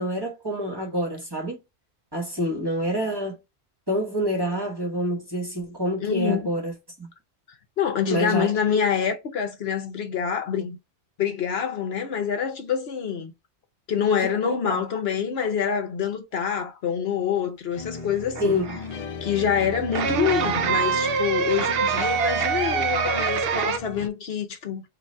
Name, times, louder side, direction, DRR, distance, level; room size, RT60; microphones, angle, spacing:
voice 1, 0.0-1.6 2.1-3.4 3.9-6.7 7.0-7.1 8.1-8.8 14.2-14.8 18.4-18.8, equal, 20° right, 1.2 m, -27 dB
voice 2, 6.0-6.5 7.8-10.8 11.2-13.3 13.9-18.6 19.2-24.8, left 8 dB, 65° left, 1.0 m, -26 dB
sound 1, 17.7-24.1, left 5 dB, 50° left, 0.5 m, -36 dB
sound 2, 18.0-18.8 19.9-23.8, right 6 dB, 65° right, 0.8 m, -25 dB
3.8 x 2.6 x 4.2 m
omnidirectional pair, 1.1 m